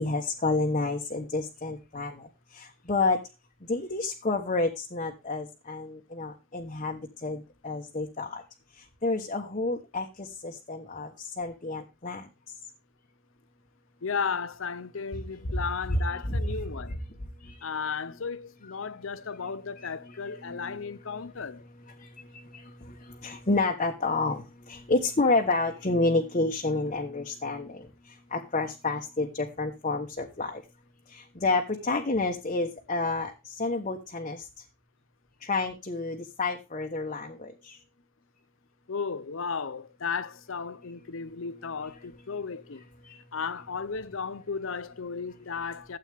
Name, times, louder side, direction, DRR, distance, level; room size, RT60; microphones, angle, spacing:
voice 1, 0.0-3.2 3.6-8.4 8.8-12.3 16.3-16.4 17.4-17.6 19.8-20.1 20.4-20.8 22.0-30.6 31.1-34.5 35.4-37.8 43.0-43.2, left 3 dB, 35° left, 1.2 m, -30 dB
voice 2, 14.0-17.0 17.6-21.6 38.9-42.8 43.3-46.0, left 5 dB, 75° left, 0.7 m, -34 dB
13.0 x 8.1 x 3.5 m
head